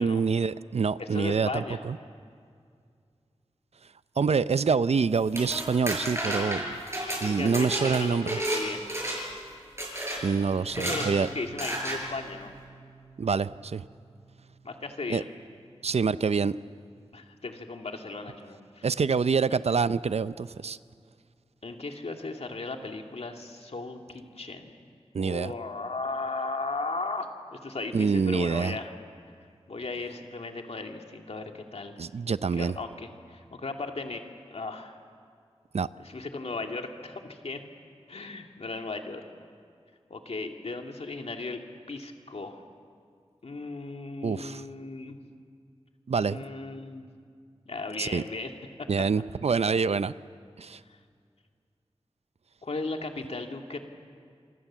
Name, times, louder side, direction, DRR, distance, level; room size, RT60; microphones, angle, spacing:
voice 1, 0.0-2.0 4.2-6.8 7.2-8.4 10.2-11.3 13.2-13.8 15.1-15.2 15.8-16.6 18.8-20.8 25.1-25.5 27.9-28.8 32.0-32.7 35.7-35.9 44.2-44.6 46.1-46.4 48.0-48.2 48.9-50.1 50.6-50.8, right 5 dB, 75° right, 15 dB, 0.6 m, -26 dB
voice 2, 1.0-1.9 6.9-8.8 10.6-12.5 14.6-15.3 17.1-18.9 21.6-24.9 25.2-28.9 29.7-32.0 32.5-34.2 34.5-35.0 36.0-37.6 38.1-39.3 40.1-41.6 41.9-42.6 43.4-45.2 46.2-47.1 47.7-48.5 48.8-48.9 50.9-51.0 52.6-53.8, left 3 dB, 70° left, 4 dB, 2.2 m, -36 dB
sound 1, 5.1-8.6 8.9-9.4 9.8-10.2 10.7-11.1 11.6-12.0, right 1 dB, 25° right, 7.2 m, -31 dB
Piano, 10.8-18.2, right 2 dB, ahead, 3.3 m, -51 dB
27.5 x 24.5 x 7.4 m, 2.2 s
wide cardioid pair, 80°, 11 cm